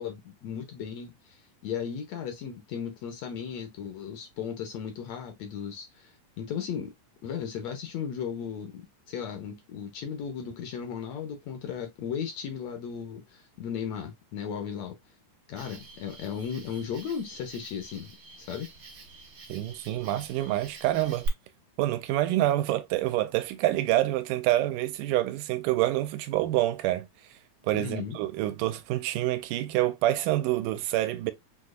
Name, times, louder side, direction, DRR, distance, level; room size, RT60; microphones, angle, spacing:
voice 1, 0.0-6.9 7.2-8.8 9.1-15.0 15.5-18.7 27.7-28.2, left 7 dB, 75° left, 1.7 m, -36 dB
Cricket, 15.6-21.3, right 6 dB, 65° right, 1.2 m, -45 dB
voice 2, 19.5-21.3 21.8-27.1 27.7-31.3, right 15 dB, 90° right, 2.2 m, -27 dB
6.3 x 2.8 x 2.3 m
omnidirectional pair, 3.7 m